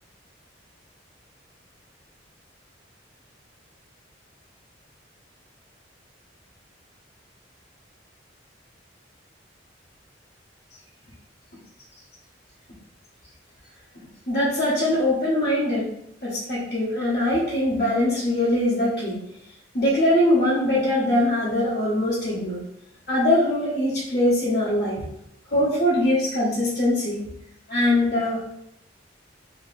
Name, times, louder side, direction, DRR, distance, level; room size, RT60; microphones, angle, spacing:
voice 1, 14.3-15.9 16.2-19.2 19.7-22.6 23.1-25.0 25.5-27.2 27.7-28.5, left 1 dB, 55° left, -10 dB, 1.1 m, -22 dB
3.0 x 2.9 x 3.2 m, 0.77 s
head